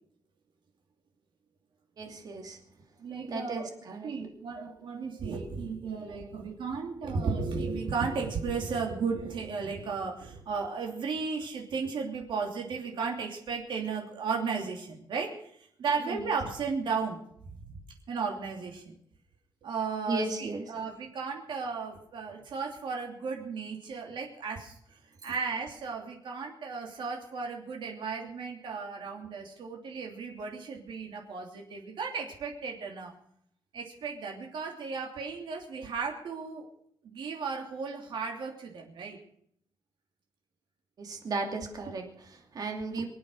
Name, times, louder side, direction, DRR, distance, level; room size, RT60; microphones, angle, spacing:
voice 1, 2.0-2.6 3.3-4.1 16.0-16.2 20.1-20.6 41.0-43.1, right 3 dB, 50° right, 3 dB, 2.7 m, -35 dB
voice 2, 3.0-3.7 4.0-17.2 18.1-19.0 19.6-33.1 33.7-36.6 37.0-39.2, right 5 dB, 75° right, 1 dB, 3.0 m, -35 dB
24.5 x 8.6 x 6.4 m, 0.67 s
wide cardioid pair, 165°, 8 cm